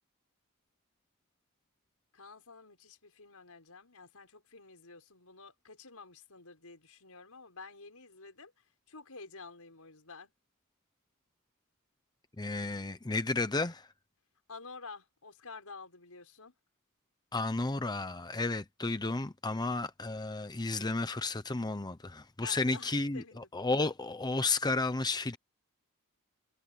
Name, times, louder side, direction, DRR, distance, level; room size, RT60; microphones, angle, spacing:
voice 1, 2.1-10.3 14.5-16.5 22.4-23.5, left 4 dB, 85° left, 5.7 m, -50 dB
voice 2, 12.4-13.9 17.3-23.2 23.5-25.4, left 3 dB, 20° left, 0.7 m, -32 dB
head